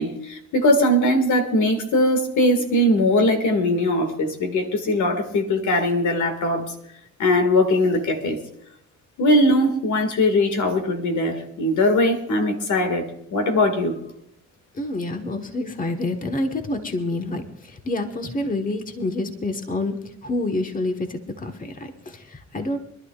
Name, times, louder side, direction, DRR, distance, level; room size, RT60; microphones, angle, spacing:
voice 1, 0.0-6.7 7.2-8.4 9.2-13.0 13.3-13.9, left 1 dB, 75° left, 6 dB, 2.1 m, -20 dB
voice 2, 14.7-22.8, left 2 dB, 25° left, 6 dB, 1.4 m, -28 dB
25.5 x 11.5 x 2.4 m, 0.75 s
cardioid pair, 90°, 30 cm